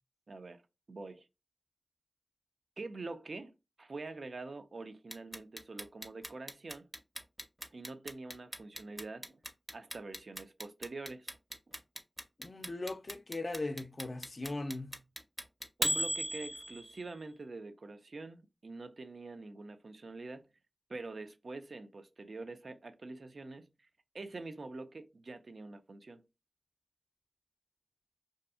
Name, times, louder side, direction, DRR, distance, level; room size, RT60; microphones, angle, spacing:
voice 1, 0.3-0.6 0.9-1.3 2.8-3.5 3.8-6.9 7.7-9.4 9.7-11.4 15.8-20.5 20.9-23.9 24.1-26.2, right 3 dB, 70° right, 0.3 m, -45 dB
Clock, 5.1-17.1, equal, 10° right, 0.5 m, -37 dB
voice 2, 12.4-15.0, left 2 dB, 55° left, 0.3 m, -39 dB
2.7 x 2.4 x 2.3 m
wide cardioid pair, 60°, 0 cm